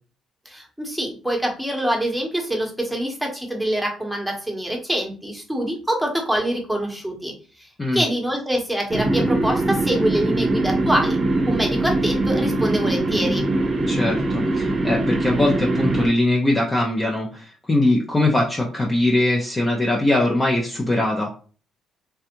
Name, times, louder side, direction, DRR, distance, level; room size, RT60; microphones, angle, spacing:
voice 1, 0.4-7.3 7.6-13.5, right 1 dB, ahead, 0 dB, 1.0 m, -25 dB
sound 1, 8.9-16.1, right 2 dB, 40° right, 0.7 m, -22 dB
voice 2, 13.9-21.3, left 1 dB, 20° left, -1 dB, 0.6 m, -21 dB
3.3 x 2.4 x 2.9 m, 0.39 s
cardioid pair, 95°, 0 cm